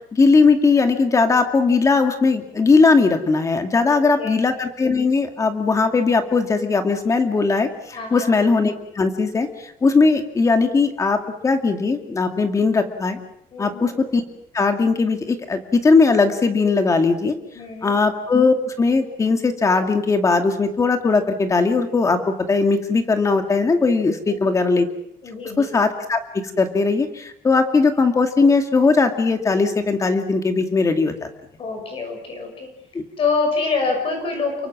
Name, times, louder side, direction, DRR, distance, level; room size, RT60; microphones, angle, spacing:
voice 1, 0.1-13.2 13.6-14.2 14.5-17.3 17.8-24.9 25.6-26.2 26.6-31.1 32.9-33.0, left 4 dB, 20° left, 6 dB, 2.3 m, -19 dB
voice 2, 3.8-4.4 7.9-8.3 13.5-13.9 17.5-17.9 24.3-24.6 25.2-25.7 31.6-32.7 33.2-34.7, left 4 dB, 35° left, 3 dB, 6.0 m, -26 dB
29.5 x 23.5 x 6.2 m, 0.76 s
cardioid pair, 180°, 16 cm